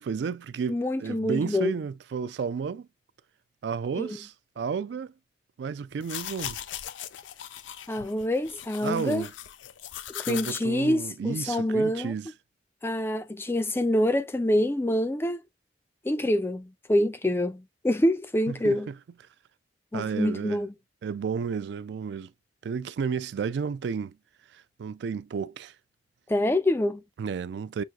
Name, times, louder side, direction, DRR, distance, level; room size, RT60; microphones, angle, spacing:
voice 1, 0.0-2.9 3.6-5.1 5.6-6.6 8.8-9.3 10.3-12.3 18.5-18.9 19.9-20.6 21.0-22.3 22.6-24.2 24.5-25.7 27.2-27.8, right 6 dB, 65° right, 0.3 m, -32 dB
voice 2, 0.7-1.7 4.0-4.2 7.9-9.3 10.1-12.1 12.8-15.4 16.0-18.9 19.9-20.7 26.3-27.0, left 1 dB, 15° left, 0.3 m, -26 dB
sound 1, 5.9-10.6, left 11 dB, 85° left, 0.4 m, -39 dB
6.0 x 2.5 x 2.3 m
head